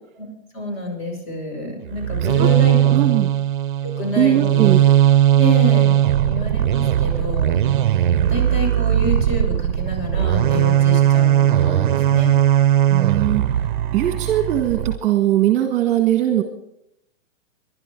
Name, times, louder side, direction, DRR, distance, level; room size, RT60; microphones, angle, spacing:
voice 1, 0.5-3.1 4.0-4.7 5.4-5.9 6.3-7.6 8.3-12.4, equal, 50° left, 2 dB, 6.9 m, -27 dB
sound 1, 1.9-15.0, right 11 dB, 40° right, 0.5 m, -18 dB
voice 2, 2.9-3.3 4.1-4.8 12.9-13.4 13.9-16.4, right 12 dB, 20° right, 6 dB, 1.2 m, -19 dB
26.5 x 11.5 x 3.8 m, 0.81 s
hypercardioid pair, 155°, 39 cm